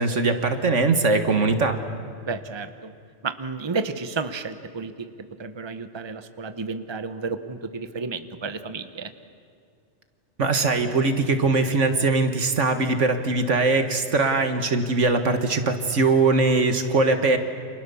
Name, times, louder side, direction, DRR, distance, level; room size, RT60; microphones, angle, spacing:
voice 1, 0.0-1.8 10.4-17.4, right 3 dB, 80° right, 7 dB, 2.0 m, -21 dB
voice 2, 2.2-2.9 3.2-5.1 5.4-9.1, right 4 dB, 25° right, 9 dB, 1.0 m, -32 dB
30.0 x 27.0 x 7.1 m, 2.2 s
omnidirectional pair, 1.2 m